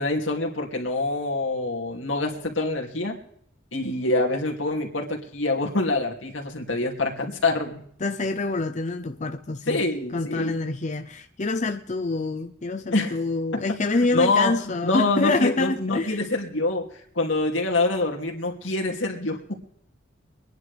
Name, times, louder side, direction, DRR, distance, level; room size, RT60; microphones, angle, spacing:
voice 1, 0.0-3.2 3.7-7.8 9.7-10.5 12.9-13.2 13.5-13.6 14.1-14.5 14.8-16.9 17.1-19.5, left 2 dB, 90° left, 2.8 m, -25 dB
voice 2, 8.0-9.8 10.1-16.2, left 3 dB, 40° left, 0.7 m, -26 dB
24.5 x 10.5 x 3.5 m
head